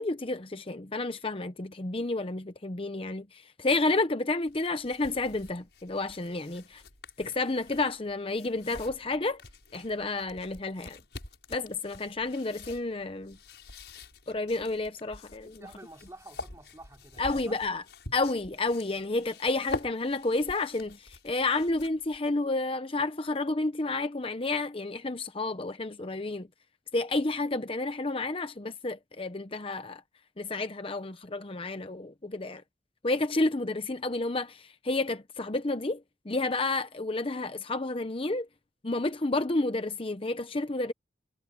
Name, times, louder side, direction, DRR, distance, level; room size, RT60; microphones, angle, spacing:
voice 1, 0.0-6.8 7.2-9.4 9.7-11.0 11.5-13.4 14.3-15.6 17.2-17.8 18.1-26.5 26.9-30.0 30.4-32.6 33.0-38.5 38.8-40.9, left 2 dB, 30° left, 0.8 m, -30 dB
sound 1, 4.4-22.2, left 2 dB, 75° left, 7.1 m, -46 dB
voice 2, 15.4-17.6, right 2 dB, 20° right, 3.5 m, -50 dB
head